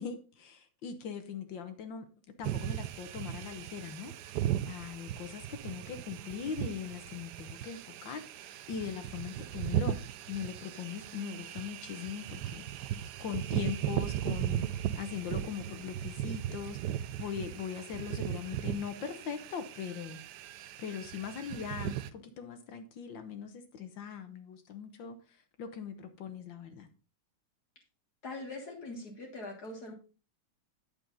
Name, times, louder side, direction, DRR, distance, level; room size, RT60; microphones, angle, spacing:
voice 1, 0.0-2.1 2.4-10.0 10.3-20.2 20.8-26.9, left 7 dB, 65° left, 8 dB, 1.5 m, -41 dB
sound 1, 2.4-22.1, right 12 dB, 85° right, 0.9 m, -37 dB
voice 2, 28.2-29.9, left 2 dB, 45° left, 1 dB, 2.0 m, -42 dB
8.9 x 6.9 x 3.9 m, 0.34 s
omnidirectional pair, 2.4 m